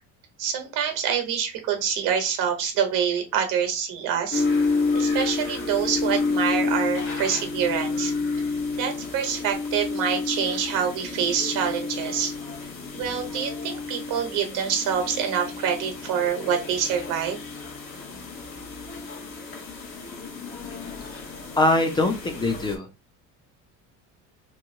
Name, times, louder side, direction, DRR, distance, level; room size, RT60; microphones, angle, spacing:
voice 1, 0.4-4.5 4.9-8.1 8.7-12.3 12.9-17.4, right 8 dB, 80° right, 5 dB, 1.0 m, -26 dB
sound 1, 4.3-22.8, left 4 dB, 45° left, 1.1 m, -30 dB
voice 2, 21.6-22.9, left 2 dB, 15° left, 5 dB, 0.3 m, -22 dB
2.9 x 2.7 x 2.6 m, 0.28 s
cardioid pair, 130°, 32 cm